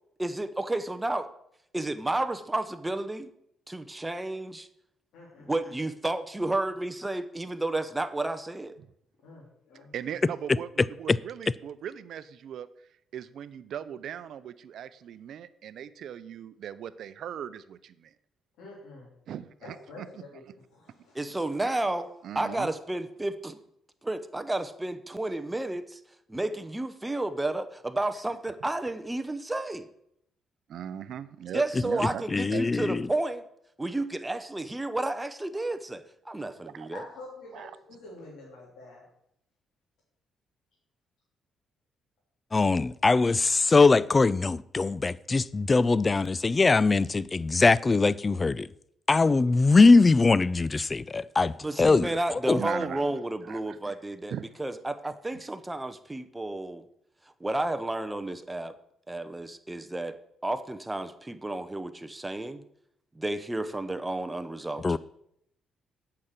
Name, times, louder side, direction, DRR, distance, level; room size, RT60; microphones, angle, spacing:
voice 1, 0.2-1.3 1.7-3.3 3.7-4.7 5.5-8.8 21.1-22.1 22.3-23.6 24.0-26.0 26.3-29.9 31.5-33.4 33.8-37.0 51.4-56.8 57.4-58.7 59.1-60.2 60.4-62.6 63.1-65.0, right 2 dB, 15° right, 0.8 m, -31 dB
voice 2, 5.1-5.5 9.2-10.2 18.6-19.1 19.6-21.2 22.5-22.6 36.9-39.1, left 2 dB, 85° left, 3.2 m, -47 dB
voice 3, 9.9-12.7 13.1-18.1 19.3-20.2 22.2-22.7 30.7-32.3 32.5-32.6 36.8-36.9 37.5-37.7 52.5-53.2 53.5-53.8 54.3-54.5 55.3-55.5, right 9 dB, 70° right, 0.6 m, -39 dB
voice 4, 32.3-33.1 42.5-48.7 49.1-51.5 51.8-52.6 64.8-65.0, left 3 dB, 30° left, 0.3 m, -22 dB
8.6 x 5.8 x 6.6 m
cardioid pair, 90°, 0 cm